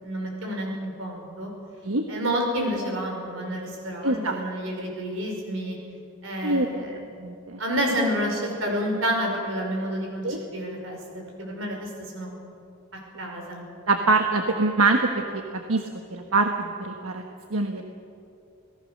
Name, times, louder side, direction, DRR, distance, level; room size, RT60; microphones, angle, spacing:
voice 1, 0.0-1.5 2.1-5.8 6.2-7.0 7.6-11.9 12.1-12.3 13.2-13.6, equal, 60° right, 1 dB, 5.7 m, -29 dB
voice 2, 4.0-4.4 6.4-6.7 7.2-7.6 10.2-10.4 13.9-17.2 17.5-17.8, right 3 dB, 80° right, 4 dB, 1.3 m, -24 dB
27.0 x 18.0 x 6.6 m, 2.5 s
head